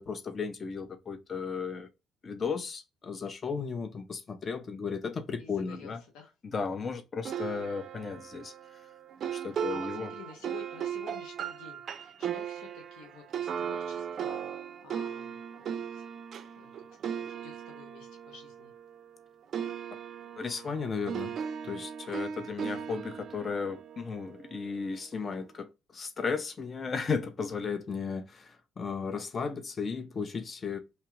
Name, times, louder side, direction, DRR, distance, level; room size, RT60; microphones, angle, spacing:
voice 1, 0.0-1.9 2.2-6.0 6.4-8.5 9.3-10.1 20.4-21.4 21.6-30.8, left 5 dB, 35° left, 0.5 m, -35 dB
voice 2, 5.4-6.3 9.5-14.4 14.8-16.0 16.6-16.7 17.0-18.7, left 5 dB, 90° left, 0.8 m, -50 dB
sound 1, 7.2-19.2 19.5-24.7, right 8 dB, 50° right, 0.4 m, -38 dB
2.9 x 2.3 x 3.0 m
cardioid pair, 110°, 0 cm